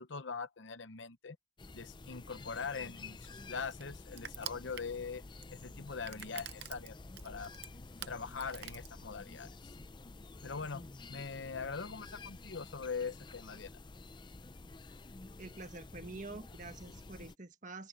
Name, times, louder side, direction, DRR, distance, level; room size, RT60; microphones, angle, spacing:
voice 1, 0.0-1.4 1.7-5.2 5.5-6.9 7.2-7.5 8.1-9.7 10.4-10.8 11.1-13.7, left 5 dB, 70° left, 0.9 m, -42 dB
sound 1, 1.6-17.3, left 3 dB, 25° left, 0.5 m, -50 dB
Crushing, 2.6-9.4, right 11 dB, 55° right, 0.7 m, -48 dB
voice 2, 15.4-17.9, right 2 dB, 40° right, 1.6 m, -47 dB
open air
head